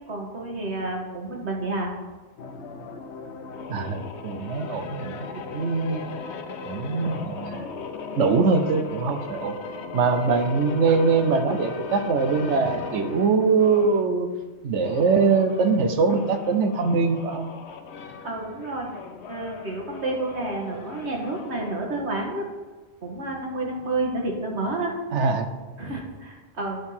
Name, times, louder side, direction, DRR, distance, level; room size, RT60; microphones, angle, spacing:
voice 1, 0.1-1.9 18.2-18.9 19.3-22.5 23.0-25.0 25.8-26.8, right 2 dB, 70° right, 0 dB, 1.8 m, -30 dB
sound 1, 2.4-14.1 14.7-21.9, left 5 dB, 75° left, 1.0 m, -37 dB
voice 2, 3.7-6.0 6.6-7.7 8.1-9.6 9.9-14.3 14.6-17.5 25.1-25.5, right 4 dB, 85° right, 7 dB, 1.2 m, -23 dB
11.0 x 4.6 x 5.6 m, 1.2 s
omnidirectional pair, 1.2 m